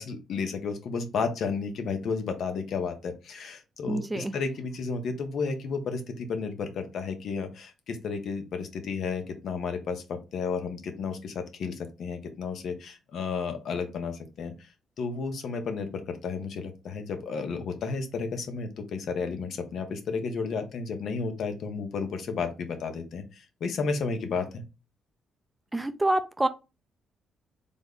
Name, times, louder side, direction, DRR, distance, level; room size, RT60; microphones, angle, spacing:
voice 1, 0.0-14.7 15.0-24.6, left 5 dB, 65° left, 0.8 m, -32 dB
voice 2, 3.9-4.3 25.7-26.5, right 1 dB, 10° right, 0.4 m, -26 dB
3.5 x 2.1 x 3.6 m
cardioid pair, 90°, 0 cm